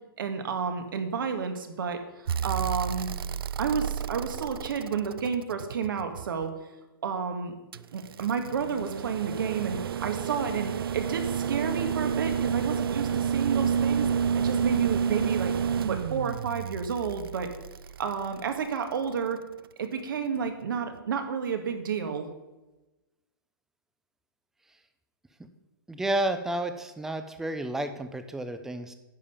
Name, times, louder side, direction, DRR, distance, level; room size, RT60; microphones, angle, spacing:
voice 1, 0.2-3.1 3.6-6.5 7.0-7.5 7.9-14.1 14.3-15.6 15.9-17.5 18.0-19.4 19.8-22.3, right 6 dB, 65° right, 6 dB, 1.7 m, -31 dB
sound 1, 2.3-6.4 7.7-18.9 20.5-20.6, right 7 dB, 80° right, 0.4 m, -30 dB
voice 2, 25.9-28.9, right 1 dB, 5° right, 8 dB, 0.6 m, -31 dB
10.5 x 5.5 x 6.8 m, 1.1 s
hypercardioid pair, 150°, 12 cm